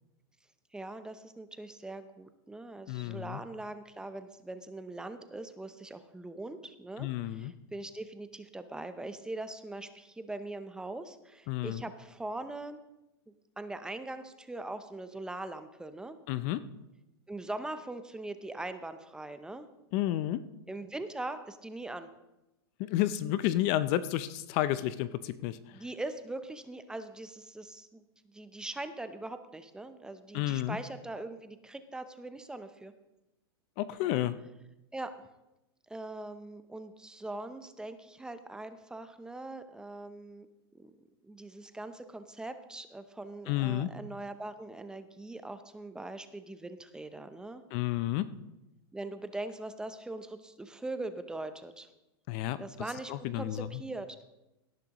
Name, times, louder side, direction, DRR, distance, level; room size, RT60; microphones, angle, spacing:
voice 1, 0.7-12.8 13.6-16.2 17.3-19.7 20.7-22.1 25.7-32.9 34.9-35.1 35.9-40.5 40.7-40.9 41.2-47.6 48.9-51.9 52.6-54.2, right 2 dB, 5° right, 10 dB, 0.6 m, -41 dB
voice 2, 2.9-3.4 7.0-7.5 11.5-11.8 16.3-16.6 19.9-20.4 22.8-25.6 30.3-30.8 33.8-34.4 43.5-43.9 47.7-48.3 52.3-52.6 53.1-53.7, left 14 dB, 40° left, 15 dB, 0.5 m, -31 dB
17.5 x 10.0 x 3.0 m, 0.95 s
hypercardioid pair, 135°, 14 cm